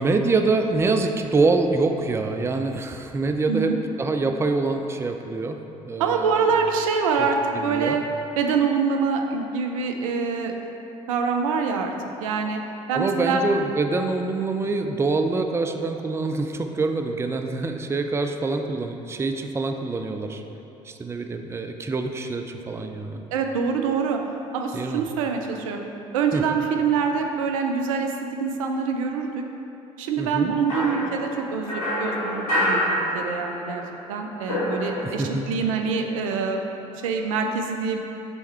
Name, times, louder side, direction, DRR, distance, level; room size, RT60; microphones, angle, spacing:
voice 1, 0.0-5.6 5.9-6.5 7.5-8.0 12.9-20.4 20.8-23.2 24.7-25.1 26.3-26.4 30.2-30.5 35.0-35.4, right 3 dB, 15° right, 5 dB, 0.4 m, -25 dB
voice 2, 6.0-8.0 8.4-10.5 11.1-11.9 12.2-12.6 12.9-13.4 23.3-24.2 24.5-25.8 26.1-28.1 28.4-29.4 30.0-33.8 34.1-36.6 37.0-38.0, right 5 dB, 75° right, 3 dB, 0.5 m, -25 dB
sound 1, 30.7-33.7 34.0-35.5, equal, 80° left, 1.3 m, -27 dB
6.8 x 3.5 x 4.4 m, 3.0 s
figure-of-eight pair, 55°, 18 cm